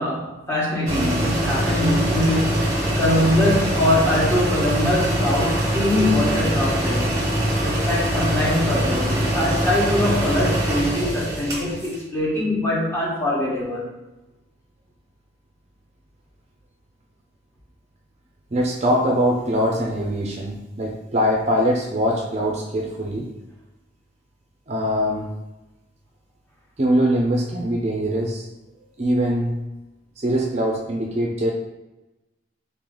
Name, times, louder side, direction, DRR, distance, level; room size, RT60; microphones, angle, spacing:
voice 1, 0.0-7.3 7.6-13.9, left 1 dB, 10° left, -7 dB, 1.4 m, -23 dB
sound 1, 0.9-12.0, equal, 20° right, 1.2 m, -23 dB
voice 2, 18.5-23.3 24.7-25.3 26.8-28.5 29.0-29.6 30.2-31.5, equal, 35° right, 0 dB, 0.4 m, -22 dB
4.1 x 3.1 x 3.8 m, 1.0 s
head